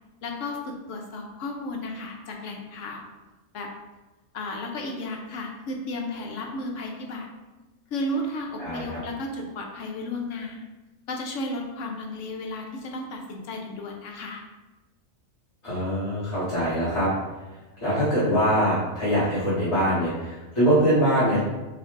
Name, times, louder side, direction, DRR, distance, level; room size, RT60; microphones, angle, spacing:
voice 1, 0.2-3.0 3.5-3.7 4.3-7.3 7.9-10.6 11.1-14.4, left 1 dB, 75° left, 1 dB, 1.0 m, -33 dB
voice 2, 15.6-17.1 17.8-21.4, equal, 25° left, -13 dB, 1.6 m, -23 dB
5.8 x 2.6 x 3.6 m, 1.1 s
omnidirectional pair, 1.3 m